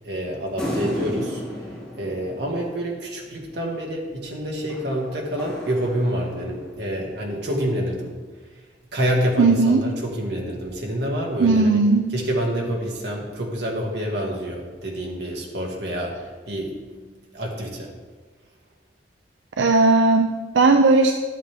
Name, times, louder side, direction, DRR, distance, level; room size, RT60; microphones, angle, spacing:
voice 1, 0.0-8.2 8.9-11.8 12.1-17.9, equal, 65° right, -1 dB, 1.7 m, -27 dB
sound 1, 0.6-3.3 4.7-6.8, equal, 5° left, 2.6 m, -33 dB
voice 2, 9.4-9.8 11.4-12.1 19.6-21.1, right 3 dB, 90° right, 5 dB, 0.5 m, -17 dB
11.5 x 7.7 x 3.4 m, 1.3 s
head